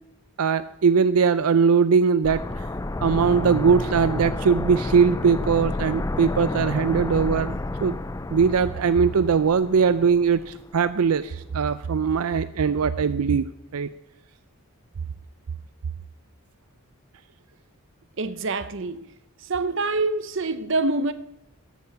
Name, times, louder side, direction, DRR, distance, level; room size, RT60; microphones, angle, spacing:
voice 1, 0.4-2.4 3.0-8.0 8.3-13.5 13.7-13.9, right 6 dB, 85° right, 0.5 m, -21 dB
sound 1, 2.2-11.0 11.2-11.3, left 2 dB, 15° left, 0.4 m, -30 dB
voice 2, 18.2-19.1 19.5-21.1, right 3 dB, 55° right, 0.8 m, -25 dB
14.0 x 8.2 x 7.1 m
head